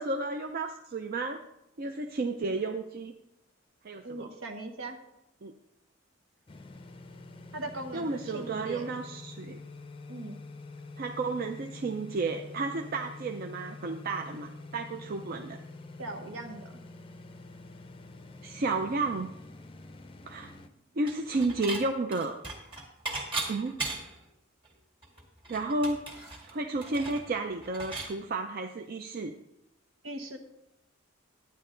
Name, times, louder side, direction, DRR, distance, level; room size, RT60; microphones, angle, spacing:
voice 1, 0.0-1.4 1.8-3.1 3.8-4.3 5.4-5.5 7.9-9.6 11.0-15.6 18.4-19.3 20.3-20.5 21.0-22.4 23.5-23.8 25.5-26.0 26.5-29.3, right 3 dB, 45° right, 5 dB, 0.5 m, -32 dB
voice 2, 4.0-5.0 7.5-8.9 10.1-10.4 16.0-16.8 30.0-30.4, right 2 dB, 80° right, 5 dB, 1.1 m, -39 dB
sound 1, 6.5-20.7, left 3 dB, 25° left, 0.5 m, -46 dB
Dishes pots and pans / Chink clink, 21.1-21.8 22.1-24.2 24.7-24.8 25.0-28.1, right 2 dB, 25° right, 1.9 m, -37 dB
10.5 x 9.4 x 3.8 m, 0.85 s
head